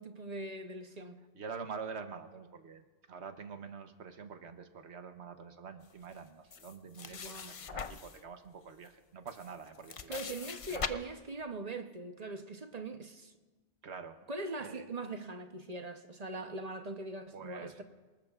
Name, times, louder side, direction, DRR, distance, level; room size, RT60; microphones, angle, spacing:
voice 1, 0.0-1.2 7.1-7.5 10.1-13.3 14.3-17.8, right 2 dB, 40° right, 0.9 m, -41 dB
voice 2, 1.3-10.2 10.7-11.0 13.8-14.2 14.6-14.9 17.3-17.8, right 5 dB, 75° right, 1.2 m, -46 dB
sound 1, 6.5-8.2 8.9-9.0 9.3-10.9, left 6 dB, 45° left, 0.4 m, -41 dB
29.0 x 20.0 x 2.4 m
omnidirectional pair, 1.1 m